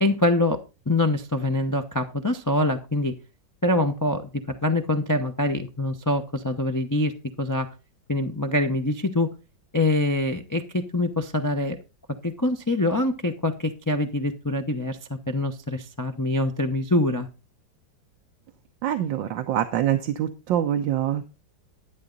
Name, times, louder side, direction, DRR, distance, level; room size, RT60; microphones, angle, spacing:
voice 1, 0.0-0.6 0.9-3.2 3.6-7.7 8.1-9.3 9.7-11.8 12.2-17.3, left 1 dB, 30° left, 5 dB, 0.3 m, -24 dB
voice 2, 18.8-21.2, right 11 dB, 80° right, 6 dB, 1.5 m, -25 dB
11.5 x 9.8 x 3.9 m, 0.29 s
omnidirectional pair, 2.0 m